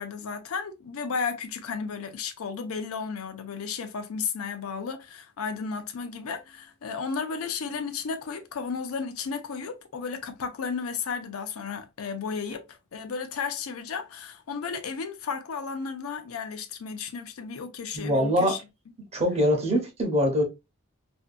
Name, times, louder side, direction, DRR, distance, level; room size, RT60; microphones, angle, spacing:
voice 1, 0.0-18.6, left 5 dB, 75° left, 0.5 m, -33 dB
voice 2, 17.9-18.5 19.1-20.4, equal, 30° right, 0.8 m, -23 dB
2.6 x 2.3 x 2.4 m
head